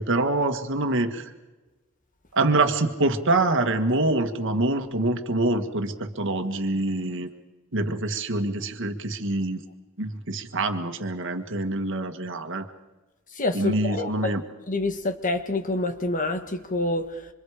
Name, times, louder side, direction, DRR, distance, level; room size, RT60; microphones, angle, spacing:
voice 1, 0.0-1.3 2.3-7.3 7.7-9.6 10.0-12.7 13.5-14.4, right 2 dB, 60° right, 1.9 m, -25 dB
voice 2, 13.3-14.3 14.7-17.3, left 2 dB, 40° left, 1.7 m, -27 dB
27.0 x 26.0 x 5.1 m
head